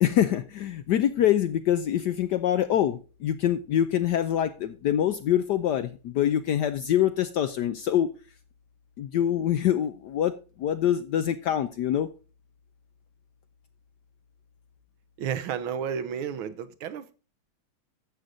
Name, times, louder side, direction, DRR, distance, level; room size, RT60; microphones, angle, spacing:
voice 1, 0.0-8.1 9.0-12.1, left 10 dB, 70° left, 1.0 m, -25 dB
voice 2, 15.2-17.2, right 8 dB, 75° right, 1.6 m, -32 dB
11.5 x 7.8 x 3.8 m
omnidirectional pair, 2.3 m